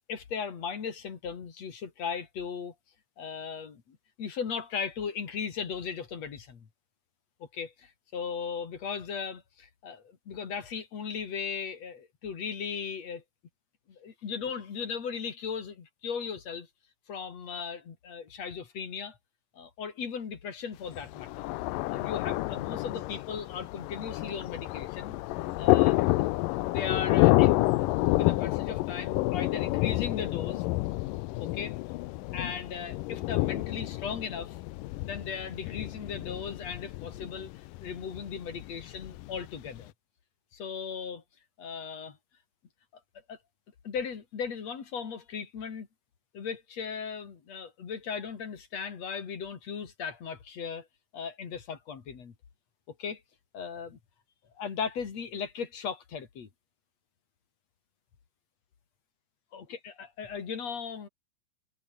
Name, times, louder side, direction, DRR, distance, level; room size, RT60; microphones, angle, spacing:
voice 1, 0.1-2.7 3.2-6.7 7.5-13.2 13.9-16.7 17.1-19.2 19.5-21.5 21.9-25.1 25.6-26.1 26.7-30.7 31.4-31.8 32.3-34.6 35.0-39.9 40.5-41.2 41.6-42.2 43.3-43.4 43.8-45.9 46.3-50.9 51.1-52.3 52.9-53.2 53.5-54.0 54.6-56.5 59.5-61.1, left 6 dB, 50° left, 3.6 m, -37 dB
Thunder, 20.9-39.8, left 19 dB, 80° left, 2.2 m, -29 dB
omnidirectional pair, 4.1 m